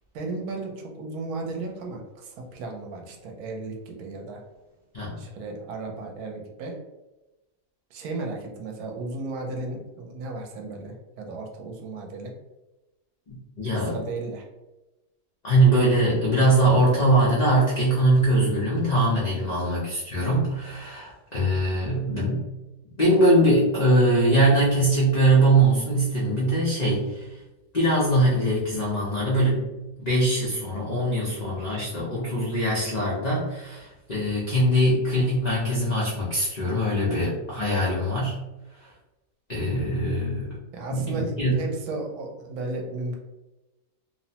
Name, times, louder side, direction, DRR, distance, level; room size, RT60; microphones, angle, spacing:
voice 1, 0.1-4.4 5.2-6.8 7.9-12.3 13.8-14.5 19.3-19.6 37.0-37.4 40.7-43.2, right 3 dB, 75° right, 1 dB, 1.0 m, -35 dB
voice 2, 13.3-14.0 15.4-22.4 23.0-27.3 27.7-29.7 30.0-38.3 38.8-38.9 39.5-40.5 40.9-41.6, right 1 dB, 90° left, -7 dB, 0.3 m, -22 dB
2.9 x 2.1 x 2.7 m, 1.0 s
omnidirectional pair, 1.7 m